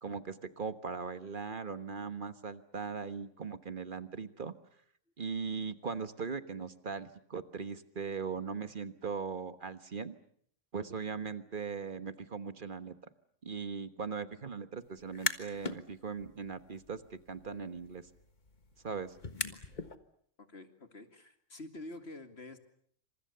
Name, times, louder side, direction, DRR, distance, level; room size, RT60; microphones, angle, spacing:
voice 1, 0.0-4.5 5.2-10.1 10.7-12.9 13.4-18.1 18.8-19.2, right 5 dB, 45° right, 11 dB, 1.5 m, -39 dB
sound 1, 15.0-15.8 16.2-19.9, left 3 dB, 40° left, 1.6 m, -41 dB
voice 2, 20.4-22.6, left 2 dB, 55° left, 8 dB, 2.5 m, -48 dB
28.0 x 26.5 x 6.8 m, 0.65 s
omnidirectional pair, 1.3 m